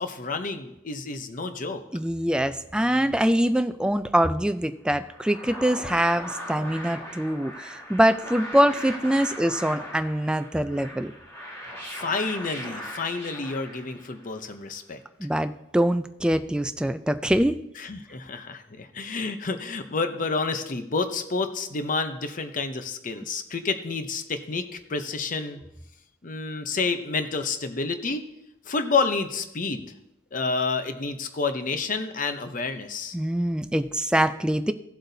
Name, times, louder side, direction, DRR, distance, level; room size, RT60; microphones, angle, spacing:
voice 1, 0.0-1.8 11.8-15.0 17.8-25.6 26.2-28.2 28.7-29.9 30.3-33.2, left 4 dB, 45° left, 8 dB, 0.7 m, -29 dB
voice 2, 1.9-11.1 15.2-17.5 33.1-34.7, right 1 dB, 5° right, 10 dB, 0.3 m, -24 dB
sound 1, 4.9-14.3, equal, 15° left, 3.0 m, -39 dB
16.0 x 7.8 x 2.7 m, 0.86 s
head